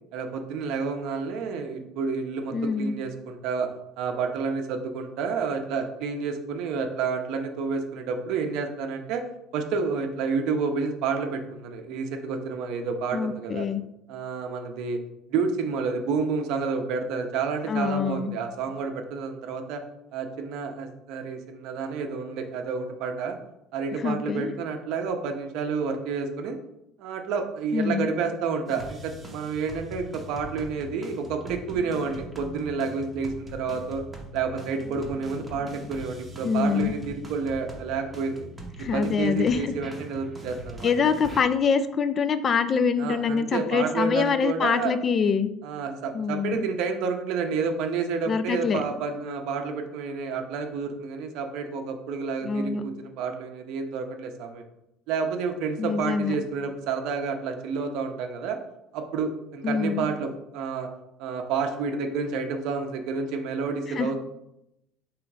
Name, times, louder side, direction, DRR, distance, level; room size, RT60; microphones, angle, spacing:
voice 1, 0.1-3.7 4.0-9.2 9.5-13.7 14.1-15.0 15.3-19.8 20.1-23.4 23.7-26.6 27.0-34.0 34.3-38.5 38.9-40.9 43.0-44.9 45.6-54.6 55.1-58.6 58.9-60.9 61.2-64.2, right 5 dB, 65° right, 5 dB, 0.6 m, -30 dB
voice 2, 2.5-2.9 13.1-13.8 17.7-18.3 24.0-24.5 27.7-28.1 36.4-36.9 38.8-39.7 40.8-45.5 46.1-46.7 48.3-48.8 52.4-52.8 55.8-56.4 59.6-60.0 64.0-64.1, left 5 dB, 30° left, 12 dB, 0.3 m, -25 dB
sound 1, 28.7-41.4, equal, 10° right, 0.7 m, -42 dB
3.7 x 3.1 x 4.7 m, 0.84 s
cardioid pair, 155°, 0 cm